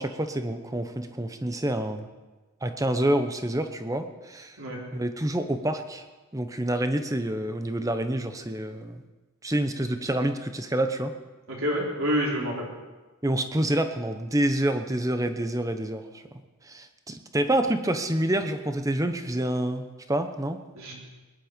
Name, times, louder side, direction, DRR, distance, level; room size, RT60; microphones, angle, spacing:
voice 1, 0.0-2.1 2.6-4.6 4.9-6.0 6.3-9.0 9.4-11.1 13.2-16.2 16.7-20.6, right 1 dB, 15° right, 8 dB, 0.9 m, -27 dB
voice 2, 11.5-12.7 20.8-20.9, equal, 65° right, -2 dB, 3.7 m, -27 dB
20.5 x 11.0 x 5.3 m, 1.2 s
head